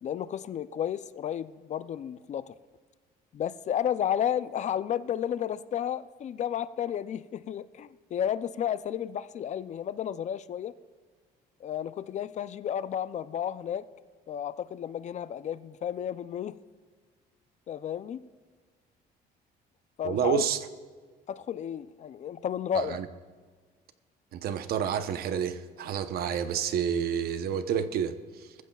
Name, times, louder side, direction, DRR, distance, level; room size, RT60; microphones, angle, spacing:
voice 1, 0.0-2.5 3.3-10.7 11.6-13.9 14.3-16.6 17.7-18.2 20.0-20.4 21.3-23.0, left 9 dB, 45° left, 0.4 m, -32 dB
voice 2, 20.0-20.7 22.7-23.1 24.3-28.5, right 8 dB, 65° right, 0.8 m, -29 dB
20.5 x 14.5 x 2.3 m
cardioid pair, 110°, 17 cm